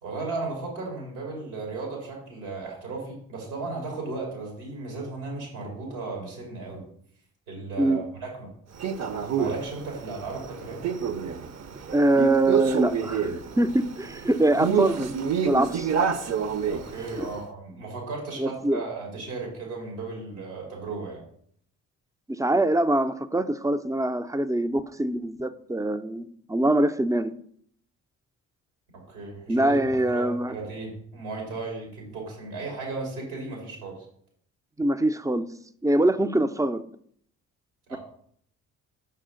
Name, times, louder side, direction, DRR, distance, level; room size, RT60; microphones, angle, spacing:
voice 1, 0.0-6.8 7.5-8.0 8.4-8.5 9.3-10.8 16.7-21.2 29.1-29.8 30.1-33.9 37.9-38.0, right 3 dB, 90° right, -1 dB, 2.5 m, -35 dB
Male speech man speaking, 8.8-17.3, right 6 dB, 45° right, 0.7 m, -28 dB
voice 2, 11.9-15.1 15.4-16.2 17.2-17.3 18.4-18.8 22.3-27.3 29.5-30.5 34.8-35.5 35.8-36.8, right 1 dB, 10° right, 11 dB, 0.4 m, -24 dB
6.1 x 5.6 x 3.8 m, 0.64 s
hypercardioid pair, 45°, 38 cm